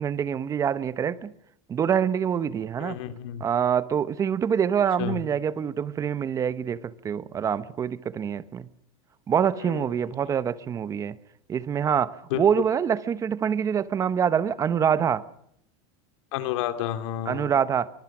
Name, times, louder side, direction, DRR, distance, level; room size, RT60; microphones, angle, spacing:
voice 1, 0.0-1.3 1.7-3.0 3.4-8.7 9.3-11.2 11.5-15.2 17.3-17.9, right 8 dB, 20° right, 0.9 m, -25 dB
voice 2, 2.8-3.4 5.0-5.2 9.6-10.1 12.3-12.6 16.3-17.5, left 11 dB, 65° left, 3.0 m, -31 dB
24.5 x 24.0 x 6.1 m
supercardioid pair, 160°, 17 cm